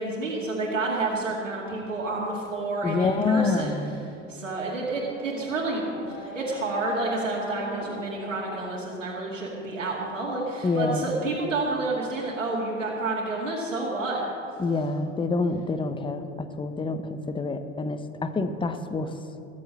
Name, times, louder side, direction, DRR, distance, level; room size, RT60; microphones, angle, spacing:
voice 1, 0.0-3.7 4.3-14.6, right 2 dB, 90° right, -4 dB, 2.4 m, -29 dB
voice 2, 2.8-4.0 10.6-11.1 14.6-19.1, left 3 dB, 15° left, 10 dB, 0.9 m, -27 dB
Race car auto racing / Accelerating revving vroom, 4.3-9.5, left 1 dB, 60° left, 4.4 m, -42 dB
21.0 x 7.6 x 6.6 m, 2.7 s
hypercardioid pair, 85°, 37 cm